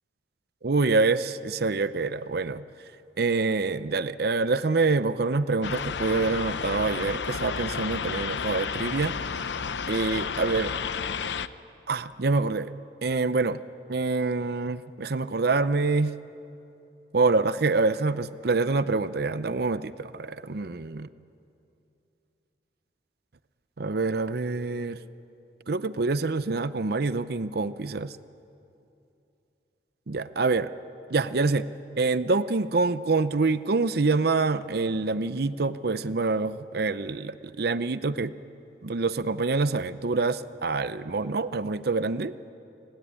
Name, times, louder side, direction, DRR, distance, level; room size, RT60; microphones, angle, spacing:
voice 1, 0.6-2.6 3.2-9.1 9.9-10.8 11.9-12.7 13.0-13.6 13.9-16.1 17.1-21.1 23.8-25.0 25.7-28.1 30.1-30.7 31.1-31.7 32.0-38.3 38.8-42.3, right 3 dB, 60° right, 14 dB, 0.7 m, -26 dB
sound 1, 5.6-11.5, left 6 dB, 80° left, 0.7 m, -31 dB
29.5 x 18.5 x 9.8 m, 2.8 s
head